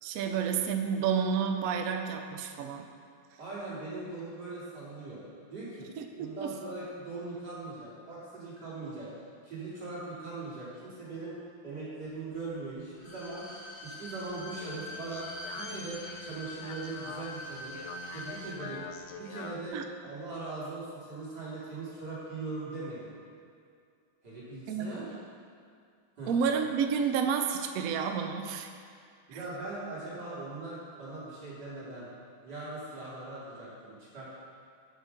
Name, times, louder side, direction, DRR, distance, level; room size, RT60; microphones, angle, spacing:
voice 1, 0.0-2.9 6.0-6.5 19.7-19.8 24.7-24.9 26.3-28.7 29.3-29.4, right 6 dB, 90° right, 6 dB, 0.7 m, -30 dB
voice 2, 3.4-5.2 5.5-5.9 6.2-11.4 11.6-13.5 13.8-15.3 15.5-17.8 18.1-18.8 19.2-19.8 20.0-23.1 24.2-25.0 26.2-26.3 29.3-32.1 32.4-34.3, right 3 dB, 55° right, -9 dB, 3.1 m, -40 dB
Bowed string instrument, 12.9-18.6 18.9-19.0, left 1 dB, 50° left, 2.5 m, -44 dB
Speech, 14.3-19.7, left 4 dB, 90° left, 1.6 m, -45 dB
8.0 x 5.1 x 6.4 m, 2.3 s
omnidirectional pair, 2.2 m